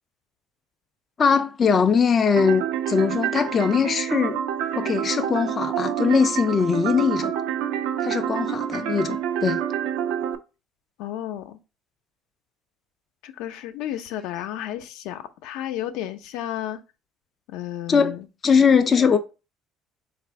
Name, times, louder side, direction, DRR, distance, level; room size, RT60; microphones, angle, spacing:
voice 1, 1.2-4.4 4.7-7.3 8.0-9.6 17.9-18.2 18.4-19.2, left 6 dB, 25° left, 0.3 m, -21 dB
sound 1, 2.4-10.4, right 10 dB, 80° right, 0.5 m, -27 dB
voice 2, 11.0-11.6 13.2-16.8 17.5-18.3 19.0-19.2, left 12 dB, 80° left, 0.5 m, -32 dB
4.1 x 2.4 x 4.4 m
cardioid pair, 165°, 0 cm